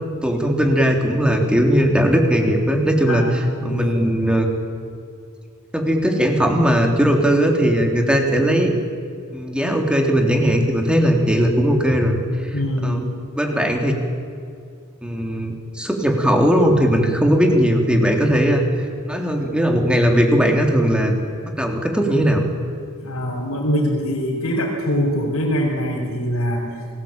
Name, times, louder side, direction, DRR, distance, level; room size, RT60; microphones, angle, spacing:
voice 1, 0.2-4.5 5.7-8.7 9.3-13.0 13.4-13.9 15.0-21.1 21.5-22.4, equal, 5° right, 2 dB, 3.5 m, -18 dB
voice 2, 3.1-4.1 12.5-13.0 23.0-26.7, equal, 80° left, -3 dB, 4.7 m, -23 dB
27.5 x 20.5 x 9.0 m, 2.3 s
head